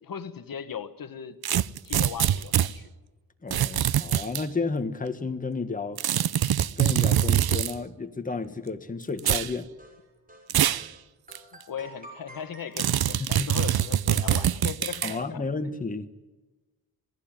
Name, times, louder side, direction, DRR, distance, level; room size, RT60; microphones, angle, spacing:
voice 1, 0.0-1.4 1.8-2.9 11.7-15.4, left 8 dB, 65° left, 10 dB, 1.4 m, -38 dB
sound 1, 1.4-2.7 3.5-4.4 6.0-7.7 9.2-9.5 10.5-10.9 11.3-11.4 12.8-15.2, right 11 dB, 85° right, 0.8 m, -24 dB
voice 2, 3.4-6.0 6.8-9.7 13.2-13.5 15.0-16.1, left 4 dB, 20° left, 7 dB, 1.6 m, -32 dB
sound 2, 9.3-10.5 10.8-11.0 11.3-14.5, right 1 dB, 25° right, 6.9 m, -50 dB
26.5 x 18.5 x 9.1 m, 1.2 s
wide cardioid pair, 145°, 36 cm